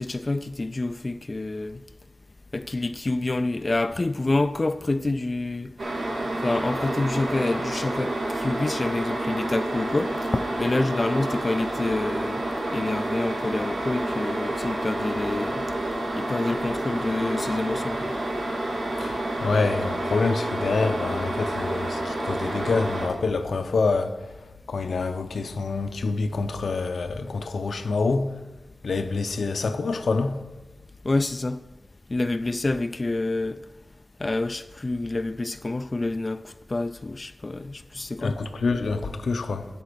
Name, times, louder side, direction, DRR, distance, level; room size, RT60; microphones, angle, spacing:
voice 1, 0.0-1.8 2.5-5.7 6.4-12.4 12.7-15.7 16.2-18.1 31.0-31.6 32.1-33.6 34.2-38.4, left 2 dB, 35° left, 0.3 m, -27 dB
sound 1, 5.8-23.1, right 1 dB, 80° right, 2.9 m, -29 dB
voice 2, 19.0-24.3 24.7-28.4 28.8-30.4 38.2-39.7, left 4 dB, 80° left, 0.7 m, -26 dB
9.3 x 8.4 x 6.1 m
wide cardioid pair, 90°, 0 cm